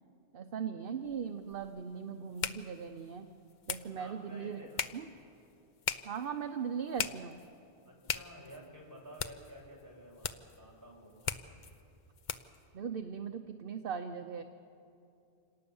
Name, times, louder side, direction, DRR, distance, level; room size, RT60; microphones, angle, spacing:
voice 1, 0.3-3.3 3.7-4.6 4.9-5.1 6.0-7.4 12.7-14.4, right 7 dB, 60° right, 7 dB, 0.9 m, -39 dB
sound 1, 1.0-12.6, left 7 dB, 50° left, 0.7 m, -42 dB
voice 2, 3.9-5.1 7.8-11.6, equal, 15° right, -3 dB, 5.6 m, -52 dB
27.0 x 18.5 x 7.1 m, 2.7 s
omnidirectional pair, 1.1 m